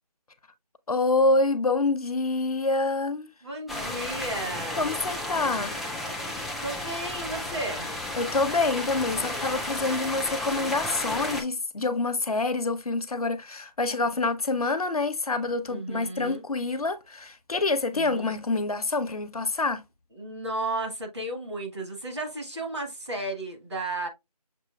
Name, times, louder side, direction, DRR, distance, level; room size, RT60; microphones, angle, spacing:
voice 1, 0.9-3.3 4.8-5.8 8.2-19.8, left 3 dB, 65° left, 0.6 m, -26 dB
voice 2, 3.4-4.9 6.6-7.9 15.7-16.4 17.9-18.3 20.1-24.1, right 2 dB, 45° right, 1.3 m, -34 dB
sound 1, 3.7-11.4, left 1 dB, ahead, 0.3 m, -33 dB
6.7 x 2.7 x 2.2 m
figure-of-eight pair, 175°, 21 cm